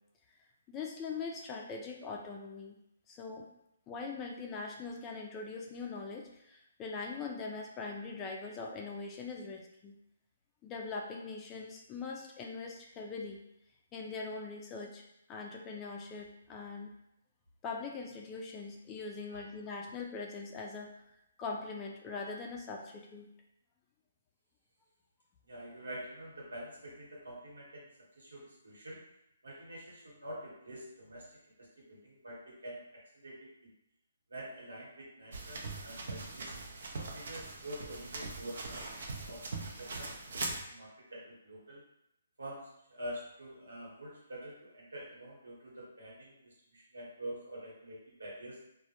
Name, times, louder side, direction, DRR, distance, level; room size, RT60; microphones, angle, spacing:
voice 1, 0.7-2.8 3.1-3.5 3.9-9.9 10.6-13.4 13.9-15.0 15.3-16.9 17.6-21.0 21.4-23.3, left 4 dB, 20° left, 1 dB, 0.3 m, -42 dB
voice 2, 25.5-27.9 28.2-29.0 29.4-33.5 34.3-36.6 37.0-40.1 40.4-41.8 42.4-48.6, right 1 dB, 85° right, -4 dB, 1.0 m, -47 dB
sound 1, 35.3-40.6, right 3 dB, 65° right, 0.4 m, -41 dB
2.1 x 2.1 x 2.8 m, 0.82 s
hypercardioid pair, 145°, 0 cm